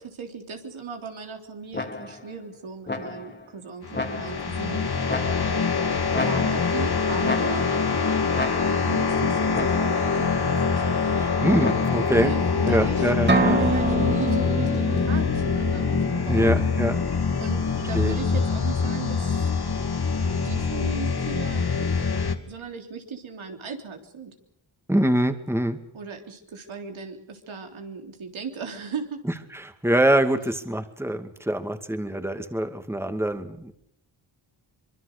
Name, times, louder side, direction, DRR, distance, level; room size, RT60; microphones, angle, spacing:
voice 1, 0.2-4.9 6.2-7.7 8.8-10.8 12.1-16.5 17.4-19.5 20.3-21.9 22.5-24.3 25.9-29.2, right 5 dB, 85° right, 3 dB, 3.6 m, -37 dB
sound 1, 1.7-2.3 2.9-3.5 3.9-4.6 5.1-5.7 6.1-6.9 7.2-8.0 8.3-9.0 9.5-10.1 11.6-12.2, left 2 dB, 20° left, 2.8 m, -33 dB
sound 2, 3.8-22.4, left 5 dB, 55° left, 2.5 m, -24 dB
voice 2, 11.1-12.3 12.6-13.6 16.3-17.0 17.9-18.2 24.9-25.8 29.5-33.7, right 1 dB, 5° right, 8 dB, 2.3 m, -24 dB
sound 3, 13.3-17.0, right 2 dB, 20° right, 2.5 m, -27 dB
24.5 x 22.5 x 6.7 m, 0.72 s
cardioid pair, 60°, 46 cm